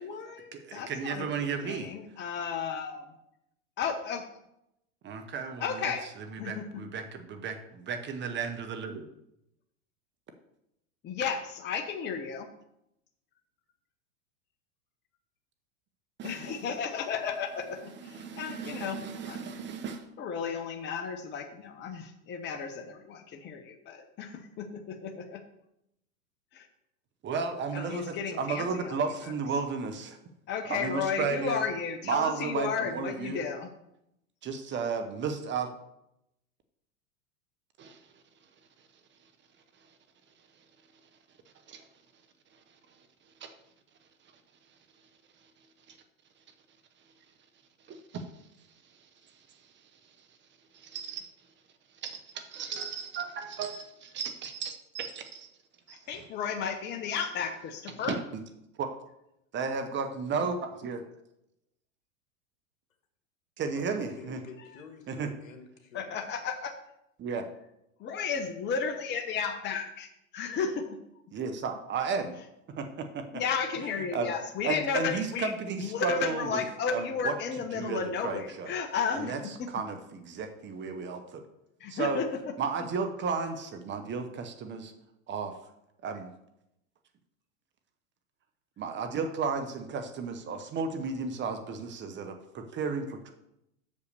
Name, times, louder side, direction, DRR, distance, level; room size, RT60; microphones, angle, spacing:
voice 1, 0.0-3.1 3.8-4.3 5.6-6.0 6.4-6.8 11.0-12.5 16.2-19.4 20.2-25.4 26.5-26.7 27.7-29.3 30.5-33.7 55.9-58.2 65.9-66.7 68.0-71.0 73.3-75.5 75.8-79.7 81.8-82.5, left 6 dB, 25° left, 6 dB, 0.8 m, -33 dB
voice 2, 0.5-1.9 5.0-5.9 6.3-9.1 16.2-16.6 18.1-20.1 27.2-30.2 30.7-31.6 32.1-33.4 34.4-35.7 37.8-38.1 41.7-41.9 43.4-43.5 45.9-46.0 47.9-48.3 49.2-49.6 50.2-50.3 50.7-51.2 52.0-55.5 55.9-56.0 58.0-58.4 58.8-58.9 59.5-61.0 63.6-64.4 65.1-65.3 67.2-67.5 71.3-72.4 72.8-73.2 74.1-74.3 74.6-76.6 76.9-77.3 77.7-78.7 79.1-79.4 79.7-81.4 81.9-82.2 82.6-84.9 85.3-85.5 86.0-86.3 88.8-93.3, right 5 dB, 25° right, 6 dB, 1.0 m, -34 dB
voice 3, 64.2-66.2, left 5 dB, 70° left, 5 dB, 1.8 m, -48 dB
6.6 x 5.3 x 6.7 m, 0.82 s
hypercardioid pair, 95°, 41 cm